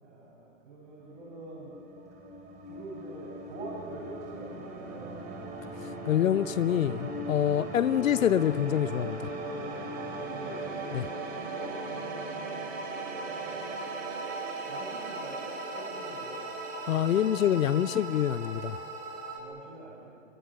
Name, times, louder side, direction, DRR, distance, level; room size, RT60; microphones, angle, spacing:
voice 1, 0.0-1.8 2.7-5.2 10.0-10.7 11.2-12.4 13.4-13.8 14.7-16.5 19.3-20.1, right 2 dB, 65° right, -3 dB, 6.9 m, -45 dB
sound 1, 1.1-19.4, right 2 dB, 20° right, 3.8 m, -38 dB
voice 2, 5.8-9.3 10.9-11.1 16.9-18.8, left 10 dB, 80° left, 15 dB, 0.7 m, -26 dB
25.5 x 24.5 x 6.3 m, 2.5 s
hypercardioid pair, 150°, 39 cm